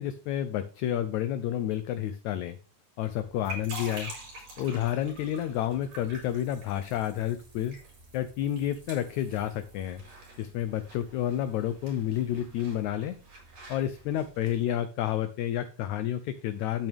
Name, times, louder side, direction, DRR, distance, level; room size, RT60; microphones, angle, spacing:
voice 1, 0.0-2.6 3.0-4.1 4.6-7.8 8.1-10.0 10.4-13.2 13.7-16.9, left 11 dB, 75° left, 11 dB, 1.8 m, -30 dB
sound 1, 3.1-14.6, right 2 dB, 70° right, 6.7 m, -47 dB
10.5 x 8.9 x 3.5 m, 0.33 s
omnidirectional pair, 3.8 m